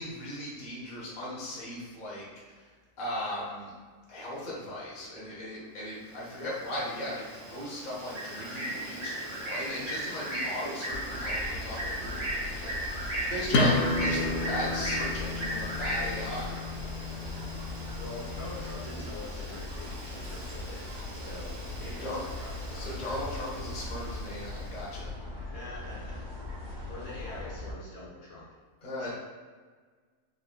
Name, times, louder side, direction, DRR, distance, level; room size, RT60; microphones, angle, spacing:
voice 1, 0.0-2.7 3.0-3.7 4.1-16.9 21.9-22.2 22.7-25.1 28.8-29.1, left 1 dB, 35° left, -6 dB, 1.0 m, -37 dB
Bird, 6.1-24.8, right 1 dB, 65° right, 1.4 m, -38 dB
sound 1, 10.9-27.7, left 2 dB, 40° right, 1.4 m, -40 dB
sound 2, 13.5-18.9, left 2 dB, 80° left, 0.6 m, -32 dB
voice 2, 13.8-15.0 17.1-17.6 18.0-22.9 25.5-26.2 26.9-28.5 29.0-29.1, left 2 dB, 60° left, -6 dB, 1.3 m, -44 dB
4.1 x 3.7 x 2.2 m, 1.5 s
omnidirectional pair, 1.8 m